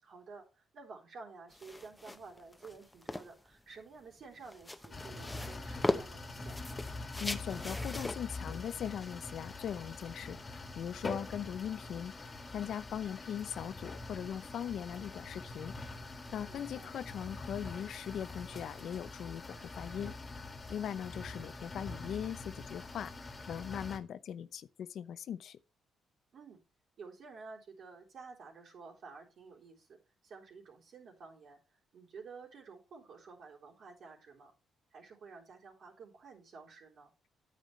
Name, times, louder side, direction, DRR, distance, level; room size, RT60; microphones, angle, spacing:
voice 1, 0.0-6.8 16.5-16.9 26.3-26.6 27.0-34.5 34.9-37.1, right 4 dB, 60° right, 3.6 m, -52 dB
sound 1, 1.5-10.0, left 2 dB, 10° left, 0.9 m, -40 dB
sound 2, 4.9-24.0, left 3 dB, 30° left, 1.7 m, -44 dB
voice 2, 7.2-20.1 20.4-25.6, left 9 dB, 65° left, 0.6 m, -40 dB
9.3 x 9.1 x 3.2 m
cardioid pair, 90°, 0 cm